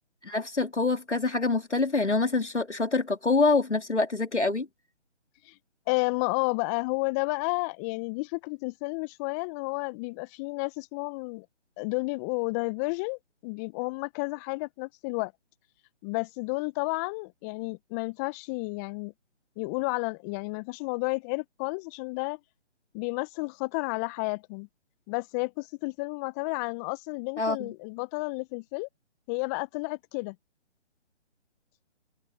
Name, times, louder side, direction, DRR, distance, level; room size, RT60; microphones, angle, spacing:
voice 1, 0.2-4.7 27.4-27.7, left 3 dB, 85° left, 3.1 m, -26 dB
voice 2, 5.9-11.5 11.8-15.3 16.0-19.1 19.6-22.4 22.9-24.7 25.1-28.9 29.3-30.3, left 30 dB, 15° left, 1.1 m, -31 dB
open air
figure-of-eight pair, 140°, 34 cm